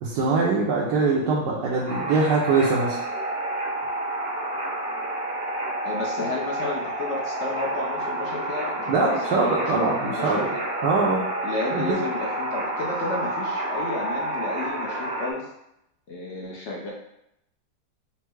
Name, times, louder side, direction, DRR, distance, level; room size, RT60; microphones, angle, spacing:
voice 1, 0.0-3.0 8.9-10.5 10.8-11.2 11.7-12.0, right 4 dB, 80° right, -5 dB, 1.3 m, -23 dB
sound 1, 1.9-15.3, right 1 dB, 50° right, 0.7 m, -29 dB
voice 2, 5.8-10.6 11.4-15.5 16.1-16.9, left 3 dB, 60° left, -3 dB, 0.7 m, -32 dB
4.4 x 2.1 x 4.5 m, 0.82 s
omnidirectional pair, 1.9 m